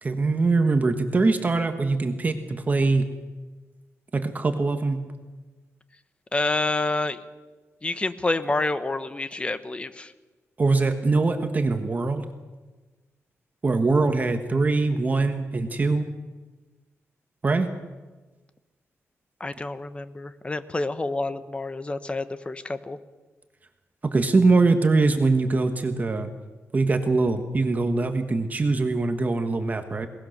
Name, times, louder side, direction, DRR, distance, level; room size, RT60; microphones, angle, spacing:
voice 1, 0.0-3.1 4.1-5.0 10.6-12.2 13.6-16.1 17.4-17.7 24.0-26.3 26.7-30.1, right 3 dB, 30° right, 7 dB, 1.5 m, -22 dB
voice 2, 6.3-7.2 7.8-10.1 19.4-23.0, left 2 dB, 20° left, 12 dB, 1.1 m, -28 dB
21.5 x 19.5 x 6.7 m, 1.3 s
wide cardioid pair, 120°, 5 cm